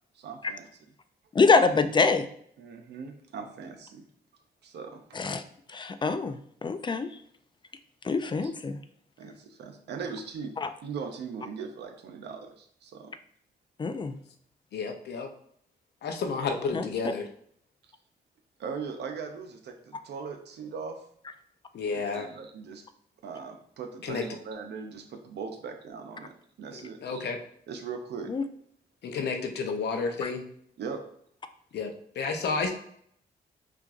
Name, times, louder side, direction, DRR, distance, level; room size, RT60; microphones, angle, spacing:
voice 1, 0.1-0.7 2.6-4.0 4.6-5.2 9.2-10.5 10.8-13.1 18.6-21.0 21.9-22.8 23.2-27.2 27.7-28.3 30.8-31.0, right 5 dB, 80° right, 5 dB, 0.7 m, -39 dB
voice 2, 1.3-2.3 5.1-5.4 5.7-7.1 8.0-8.8 10.6-10.7 13.8-14.2 16.7-16.9 28.3-28.4 30.2-30.3, left 4 dB, 25° left, 10 dB, 0.4 m, -25 dB
voice 3, 14.7-15.3 16.0-17.3 21.7-22.3 24.0-24.2 26.7-27.4 29.0-30.5 31.7-32.7, left 4 dB, 75° left, 5 dB, 0.7 m, -31 dB
5.8 x 2.5 x 2.5 m, 0.66 s
cardioid pair, 90°, 17 cm